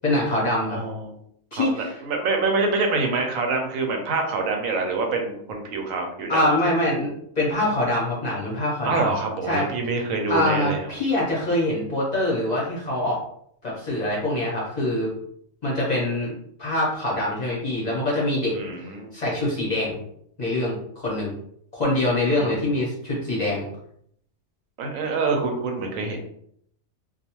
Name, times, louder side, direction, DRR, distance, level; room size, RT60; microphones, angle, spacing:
voice 1, 0.0-0.8 1.5-2.0 6.3-7.1 7.4-9.1 9.5-9.7 10.3-13.2 13.6-15.1 15.6-16.3 16.6-18.6 19.1-20.0 20.4-21.3 21.7-23.7, left 1 dB, 45° left, -5 dB, 0.6 m, -24 dB
voice 2, 0.7-1.1 1.6-6.4 8.8-10.8 18.5-19.1 22.3-22.6 24.8-26.2, right 3 dB, 85° right, 3 dB, 1.0 m, -26 dB
2.4 x 2.2 x 2.9 m, 0.68 s
omnidirectional pair, 1.4 m